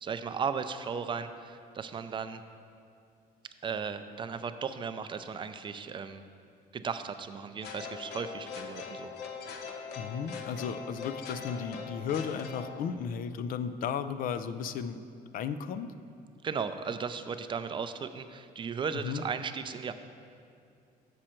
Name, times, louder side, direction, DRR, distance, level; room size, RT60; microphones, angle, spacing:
voice 1, 0.0-2.4 3.6-6.2 6.7-9.1 16.4-19.9, right 6 dB, 30° right, 10 dB, 0.4 m, -36 dB
sound 1, 7.6-12.8, left 5 dB, 75° left, 0.8 m, -41 dB
voice 2, 10.0-15.0 15.3-15.9 19.0-19.2, left 7 dB, 55° left, 11 dB, 0.4 m, -34 dB
7.4 x 6.3 x 4.3 m, 2.5 s
cardioid pair, 110°, 17 cm